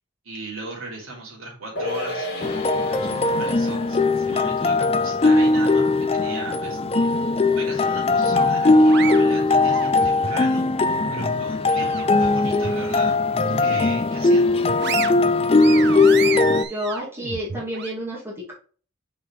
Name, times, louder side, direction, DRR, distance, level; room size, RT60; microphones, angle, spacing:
voice 1, 0.2-2.6 2.9-7.1 7.5-14.6, right 2 dB, 85° right, -3 dB, 3.2 m, -37 dB
sound 1, 1.8-8.4 8.7-8.8, left 1 dB, 55° left, 2.0 m, -36 dB
sound 2, 2.4-16.6, left 3 dB, 30° left, 0.4 m, -19 dB
sound 3, 8.3-10.4 10.8-12.3 12.6-12.8 13.3-14.1 14.5-17.9, right 7 dB, 55° right, 0.6 m, -32 dB
voice 2, 16.5-18.5, equal, 10° right, -6 dB, 2.4 m, -30 dB
6.1 x 4.8 x 3.2 m, 0.40 s
head